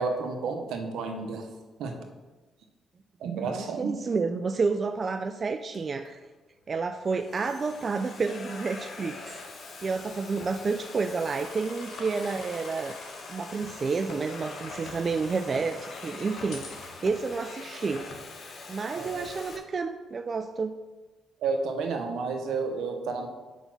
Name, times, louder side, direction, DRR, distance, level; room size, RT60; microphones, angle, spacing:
voice 1, 0.0-1.5 1.8-2.0 3.2-3.9 18.9-19.3 21.4-23.3, right 4 dB, 80° right, 4 dB, 0.8 m, -31 dB
voice 2, 3.4-6.2 6.7-9.4 9.8-13.0 13.3-16.6 17.0-18.1 18.7-20.7, right 4 dB, 40° right, 8 dB, 0.3 m, -30 dB
Domestic sounds home sounds, 5.7-6.1 6.9-19.6, left 3 dB, 55° left, 0.9 m, -43 dB
sound 1, 11.2-16.9, left 3 dB, 85° left, 1.4 m, -47 dB
5.1 x 4.1 x 6.0 m, 1.2 s
cardioid pair, 90°, 0 cm